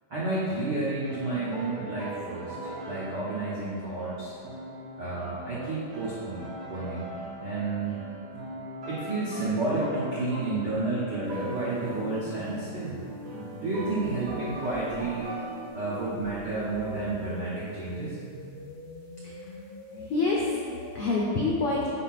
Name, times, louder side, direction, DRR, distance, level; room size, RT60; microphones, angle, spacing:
voice 1, 0.1-4.4 5.0-6.4 6.7-7.1 7.4-8.0 8.8-13.0 13.6-15.3 15.7-18.2, right 2 dB, 75° right, -9 dB, 0.9 m, -31 dB
sound 1, 1.0-10.8 11.0-15.7, right 1 dB, 40° right, 1.8 m, -40 dB
sound 2, 11.2-21.2, left 1 dB, 50° left, 2.5 m, -45 dB
voice 2, 19.2-19.6 19.9-21.9, left 3 dB, 90° left, -4 dB, 1.2 m, -28 dB
6.6 x 4.7 x 5.8 m, 2.5 s
omnidirectional pair, 3.7 m